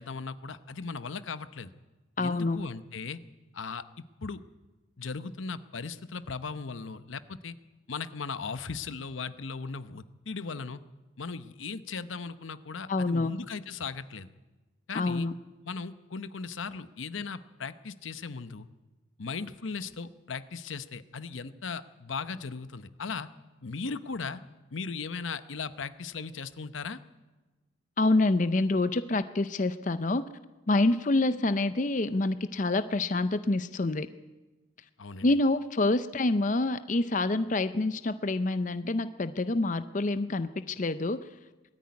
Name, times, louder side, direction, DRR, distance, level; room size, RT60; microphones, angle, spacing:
voice 1, 0.0-1.7 2.2-3.2 3.5-3.8 4.2-4.4 5.0-7.6 7.9-10.8 11.2-14.3 14.9-15.3 15.6-18.7 19.2-23.3 23.6-24.4 24.7-27.0 35.0-35.3, left 4 dB, 85° left, 13 dB, 0.8 m, -37 dB
voice 2, 2.2-2.6 12.9-13.3 14.9-15.3 28.0-30.2 30.7-34.1 35.2-41.2, left 2 dB, 40° left, 12 dB, 0.6 m, -27 dB
20.0 x 13.5 x 9.6 m, 1.2 s
head